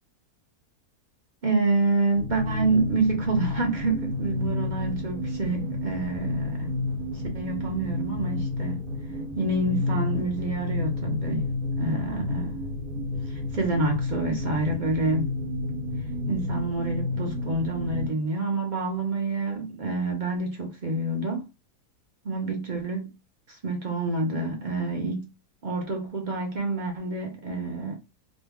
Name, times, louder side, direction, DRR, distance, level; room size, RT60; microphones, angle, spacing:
voice 1, 1.4-6.7 7.3-8.8 9.3-11.5 11.8-12.6 13.3-15.3 16.3-21.5 22.2-23.1 23.5-25.3 25.6-28.0, right 2 dB, 40° right, 0.8 m, -27 dB
sound 1, 2.1-18.1, left 2 dB, 70° right, 1.3 m, -31 dB
3.1 x 2.2 x 3.5 m
omnidirectional pair, 1.7 m